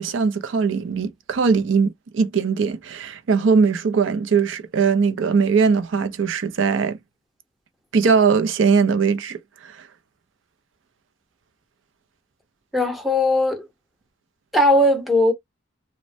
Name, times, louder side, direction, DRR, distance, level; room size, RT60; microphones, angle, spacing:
voice 1, 0.0-7.0 7.9-9.4 9.6-9.7, right 5 dB, 70° right, 0.5 m, -20 dB
voice 2, 12.7-13.6 14.5-15.3, left 1 dB, ahead, 0.7 m, -18 dB
3.1 x 2.1 x 2.5 m
head